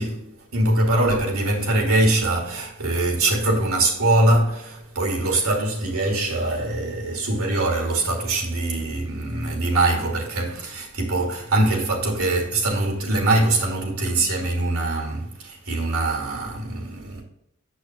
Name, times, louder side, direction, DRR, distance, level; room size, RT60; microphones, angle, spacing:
voice 1, 0.0-17.2, right 2 dB, 85° right, 2.5 m, -23 dB
7.4 x 6.2 x 3.5 m
head